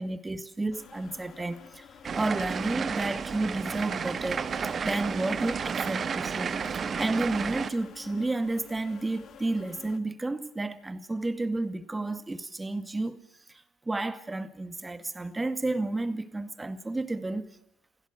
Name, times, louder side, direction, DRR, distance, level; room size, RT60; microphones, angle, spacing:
voice 1, 0.0-1.9 2.1-4.5 4.8-13.2 13.5-17.5, right 2 dB, 15° right, 2.0 m, -31 dB
sound 1, 0.7-10.0, left 8 dB, 50° left, 2.0 m, -51 dB
sound 2, 2.0-7.7, right 6 dB, 35° right, 1.6 m, -32 dB
28.0 x 17.0 x 8.3 m
cardioid pair, 100°, 0 cm